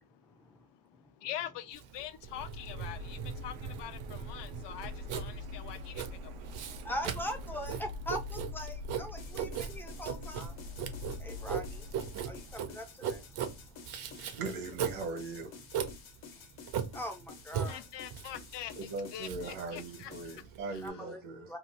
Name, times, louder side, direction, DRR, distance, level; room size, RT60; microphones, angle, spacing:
voice 1, 0.0-6.7 17.7-18.8 19.1-20.1 20.4-21.0, left 11 dB, 65° left, 0.6 m, -45 dB
Writing, 1.7-20.9, right 8 dB, 55° right, 0.6 m, -39 dB
Printer, 2.2-12.6, left 2 dB, 90° right, 0.7 m, -44 dB
voice 2, 6.9-10.5 11.2-11.6 12.3-12.4 12.7-13.2 16.9-17.2 17.5-17.8 20.8-21.2 21.5-21.6, equal, 5° left, 0.4 m, -40 dB
sound 1, 9.2-20.4, left 5 dB, 85° left, 1.1 m, -52 dB
voice 3, 14.4-15.5 18.8-21.5, right 3 dB, 75° right, 1.0 m, -39 dB
2.7 x 2.3 x 3.3 m
cardioid pair, 160°, 47 cm